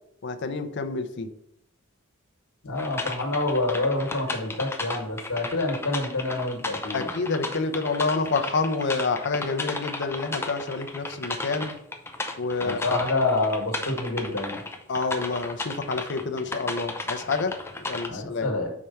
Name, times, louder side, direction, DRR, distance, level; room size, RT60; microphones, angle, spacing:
voice 1, 0.2-1.3 6.9-11.7 12.4-13.0 14.9-18.5, left 4 dB, 55° left, 8 dB, 0.6 m, -28 dB
voice 2, 2.6-7.1 12.6-14.6 18.1-18.7, left 2 dB, 90° left, 2 dB, 1.4 m, -27 dB
sound 1, 2.8-18.1, left 2 dB, 10° left, 0.5 m, -34 dB
4.9 x 4.5 x 5.4 m, 0.77 s
head